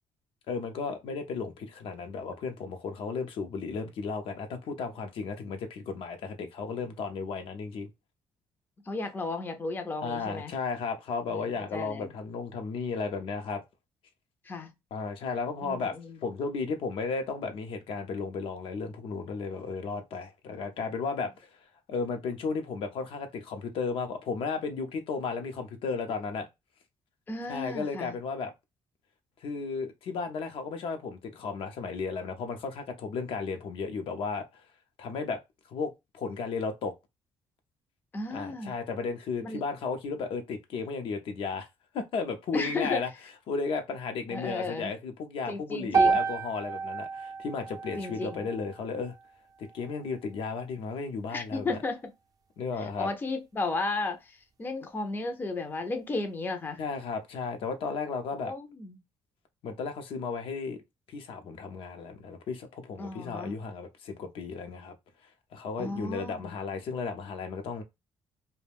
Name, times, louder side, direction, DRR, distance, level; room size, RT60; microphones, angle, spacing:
voice 1, 0.5-7.9 10.0-13.6 14.9-15.9 16.2-21.3 21.9-26.5 27.5-28.5 29.4-34.6 35.0-35.4 35.7-36.9 38.3-41.7 41.9-43.1 43.5-49.1 49.6-51.8 52.6-53.1 56.8-58.5 59.6-60.8 61.1-65.0 65.5-67.8, left 4 dB, 70° left, 0.6 m, -34 dB
voice 2, 8.9-10.6 11.3-12.1 14.4-14.7 15.6-16.2 27.3-28.1 38.1-38.7 39.4-39.6 42.5-43.0 44.3-44.9 45.5-46.2 48.0-48.5 51.3-52.1 52.8-56.8 58.4-59.0 63.0-63.6 65.8-66.5, left 3 dB, 20° left, 0.4 m, -34 dB
sound 1, 45.9-50.1, right 5 dB, 40° right, 0.5 m, -30 dB
2.4 x 2.1 x 3.3 m
cardioid pair, 110°, 10 cm